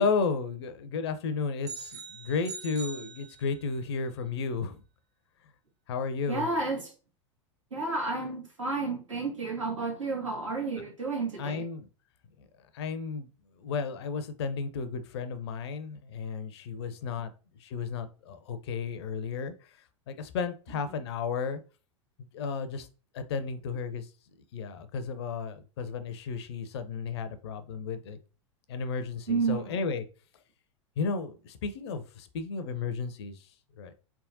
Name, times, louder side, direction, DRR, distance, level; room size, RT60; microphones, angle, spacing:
voice 1, 0.0-4.8 5.9-6.5 11.4-11.9 12.7-13.3 13.6-17.3 17.6-19.7 20.1-21.6 22.3-22.9 23.1-24.1 24.5-28.2 28.7-30.0 31.0-33.5 33.8-33.9, left 5 dB, 55° left, 0.6 m, -33 dB
sound 1, 1.6-3.8, right 4 dB, 55° right, 1.1 m, -43 dB
voice 2, 6.3-6.9 7.7-11.6 20.7-20.8 29.3-29.8, right 3 dB, 75° right, 1.5 m, -31 dB
4.3 x 3.5 x 2.6 m
figure-of-eight pair, 90°, 16 cm